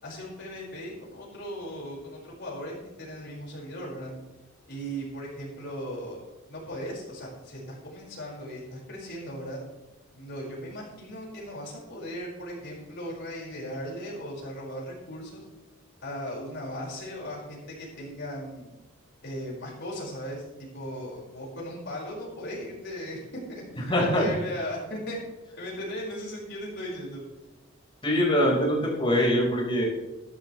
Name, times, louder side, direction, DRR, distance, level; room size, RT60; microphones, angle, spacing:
voice 1, 0.0-4.1 4.7-9.6 10.1-15.4 16.0-18.7 19.2-23.2 23.5-25.2 25.5-27.2, equal, 60° left, -4 dB, 5.2 m, -37 dB
voice 2, 23.9-24.3 28.0-29.8, equal, 25° left, -3 dB, 4.6 m, -23 dB
13.5 x 12.5 x 3.2 m, 1.0 s
head